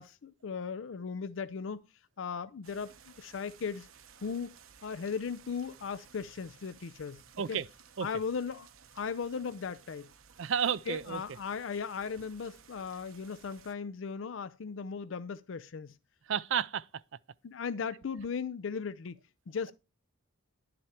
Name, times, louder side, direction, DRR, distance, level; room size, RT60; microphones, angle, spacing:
voice 1, 0.0-1.8 2.2-3.9 4.2-4.5 4.8-7.2 7.5-7.6 8.0-10.1 10.9-16.0 17.4-19.2 19.5-19.7, left 5 dB, 65° left, 0.5 m, -37 dB
sound 1, 2.6-13.7, right 7 dB, 85° right, 1.0 m, -58 dB
voice 2, 7.4-7.7 8.0-8.1 10.4-11.2 16.3-16.9, right 8 dB, 65° right, 0.4 m, -31 dB
11.5 x 7.7 x 4.3 m
head